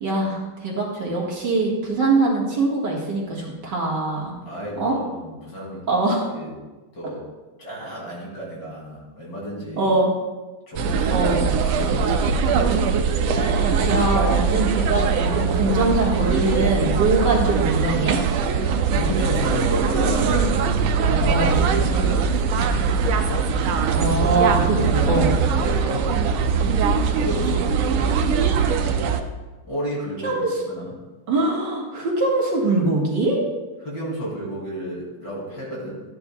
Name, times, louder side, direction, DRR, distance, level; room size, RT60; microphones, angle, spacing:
voice 1, 0.0-4.3 4.8-5.0 5.9-6.3 9.8-10.1 11.1-11.4 13.3-18.2 21.3-21.6 23.9-24.8 25.1-25.3 30.2-30.6 31.3-33.4, right 2 dB, 55° right, -3 dB, 2.2 m, -22 dB
voice 2, 4.4-5.9 6.3-6.5 6.9-7.2 7.6-9.9 10.7-12.6 18.9-20.7 21.0-22.4 23.9-26.1 26.9-28.7 29.7-31.0 33.8-36.0, equal, 55° left, -4 dB, 3.3 m, -31 dB
sound 1, 10.8-29.2, right 5 dB, 80° right, 1.5 m, -21 dB
13.0 x 10.0 x 2.3 m, 1.2 s
omnidirectional pair, 2.3 m